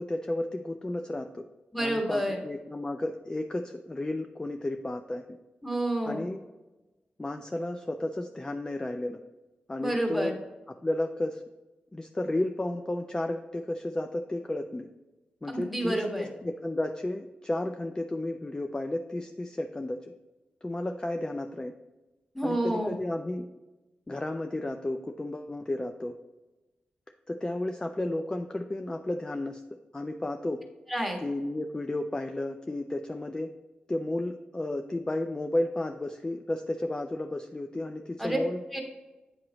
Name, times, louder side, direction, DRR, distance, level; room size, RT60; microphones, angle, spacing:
voice 1, 0.0-1.5 1.8-5.2 6.1-6.4 7.2-9.2 9.7-10.4 10.8-11.4 11.9-14.9 15.4-20.0 20.6-21.7 22.4-23.5 24.1-26.1 27.3-29.6 29.9-30.6 31.2-33.5 33.9-38.6, left 1 dB, 20° left, 6 dB, 0.4 m, -32 dB
voice 2, 1.7-2.4 5.6-6.2 9.8-10.3 15.5-16.3 22.3-23.0 30.9-31.2 38.2-38.4 38.7-38.8, right 1 dB, ahead, 1 dB, 1.4 m, -29 dB
8.5 x 2.9 x 4.0 m, 1.1 s
cardioid pair, 60°, 3 cm